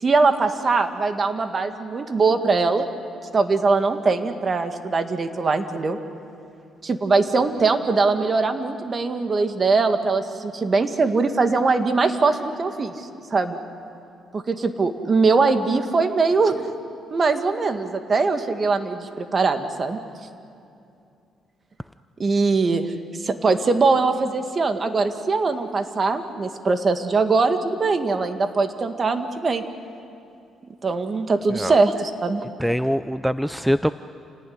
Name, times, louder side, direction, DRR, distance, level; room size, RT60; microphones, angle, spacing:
voice 1, 0.0-2.9 3.3-6.0 6.8-13.6 14.3-16.7 17.1-20.0 22.2-22.9 23.2-29.6 30.8-32.4, right 4 dB, 40° right, 7 dB, 1.9 m, -21 dB
voice 2, 32.6-33.9, equal, ahead, 12 dB, 0.5 m, -23 dB
28.5 x 18.5 x 9.6 m, 2.5 s
cardioid pair, 90°, 0 cm